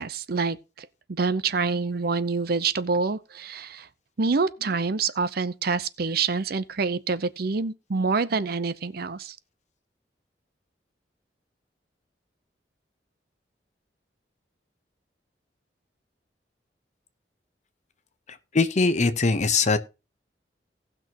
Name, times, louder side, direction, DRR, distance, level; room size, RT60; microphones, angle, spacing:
voice 1, 0.0-3.9 4.2-9.4, right 4 dB, 60° right, 0.7 m, -27 dB
voice 2, 18.5-19.8, left 4 dB, 45° left, 0.9 m, -21 dB
18.0 x 6.1 x 2.9 m
head